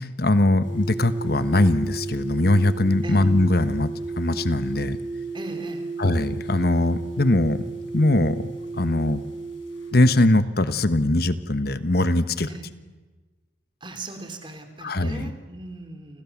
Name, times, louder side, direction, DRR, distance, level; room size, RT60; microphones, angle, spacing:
voice 1, 0.0-5.0 6.0-7.6 7.9-8.5 8.8-9.2 9.9-12.5 14.8-15.3, left 1 dB, 55° left, 12 dB, 1.2 m, -21 dB
sound 1, 0.6-9.9, right 3 dB, 90° left, 7.6 m, -34 dB
voice 2, 3.0-3.4 5.3-5.9 12.5-12.7 13.8-16.2, right 2 dB, 25° right, 6 dB, 3.3 m, -38 dB
30.0 x 27.0 x 7.3 m, 1.3 s
head